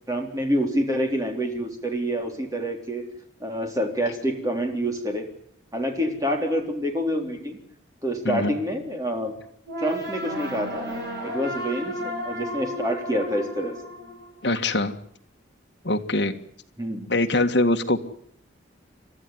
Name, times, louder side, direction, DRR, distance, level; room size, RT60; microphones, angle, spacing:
voice 1, 0.1-3.1 3.4-5.3 5.7-7.6 8.0-9.4 9.8-13.8 16.8-17.1, equal, 15° right, 3 dB, 3.9 m, -27 dB
sound 1, 9.7-14.7, equal, 55° right, 7.2 m, -33 dB
voice 2, 14.4-14.9 15.8-16.3 17.1-18.0, left 2 dB, 55° left, 5 dB, 1.8 m, -22 dB
29.5 x 13.0 x 9.5 m, 0.66 s
head